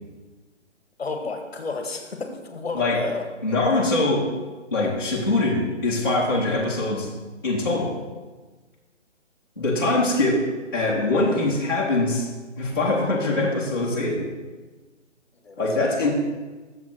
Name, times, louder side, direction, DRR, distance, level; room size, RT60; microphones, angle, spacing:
voice 1, 1.0-3.2 15.4-16.1, left 4 dB, 55° left, 5 dB, 1.0 m, -32 dB
voice 2, 3.4-4.3 4.7-7.1 7.4-7.9 9.6-10.5 10.7-12.3 12.6-14.3 15.6-16.1, left 2 dB, 20° left, -8 dB, 0.7 m, -23 dB
6.8 x 4.8 x 6.0 m, 1.3 s
hypercardioid pair, 180°, 36 cm